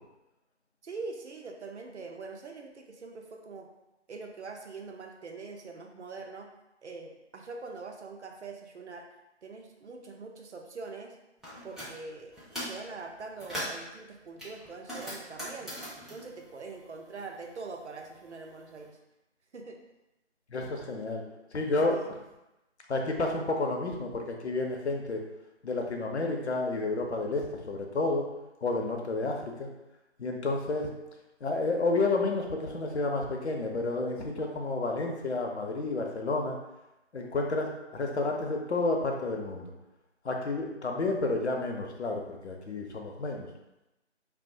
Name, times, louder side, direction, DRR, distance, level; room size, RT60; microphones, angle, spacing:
voice 1, 0.8-3.7 4.1-6.5 6.8-9.1 9.4-11.2 11.6-12.3 12.6-15.7 16.1-19.0 19.5-19.8 21.8-22.1, right 4 dB, 70° right, 2 dB, 0.5 m, -43 dB
sound 1, 11.4-11.9 12.3-12.8 13.2-13.9 14.4-17.3 17.6-18.7, equal, ahead, 0.4 m, -40 dB
voice 2, 20.5-21.2 21.5-22.0 22.9-25.2 25.6-28.3 28.6-29.7 30.2-30.9 31.4-36.6 37.1-39.7 40.2-43.5, left 3 dB, 70° left, 1 dB, 0.6 m, -30 dB
2.3 x 2.1 x 2.6 m, 0.95 s
figure-of-eight pair, 175°, 35 cm